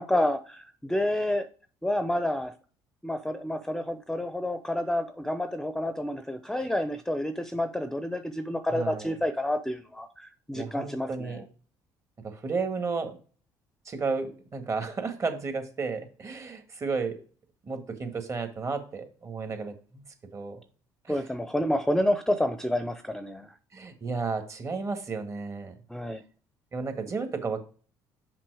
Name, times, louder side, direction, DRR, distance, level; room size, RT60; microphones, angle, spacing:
voice 1, 0.0-1.5 1.8-2.5 3.0-11.4 21.1-23.5 25.9-26.2, left 1 dB, 5° left, 9 dB, 0.7 m, -29 dB
voice 2, 8.7-9.1 10.5-11.4 12.2-13.2 13.8-17.2 17.7-20.0 20.3-20.6 21.0-21.2 23.7-25.7 26.7-27.6, right 4 dB, 35° right, 6 dB, 1.8 m, -33 dB
5.9 x 5.5 x 4.8 m, 0.39 s
supercardioid pair, 80°, 9 cm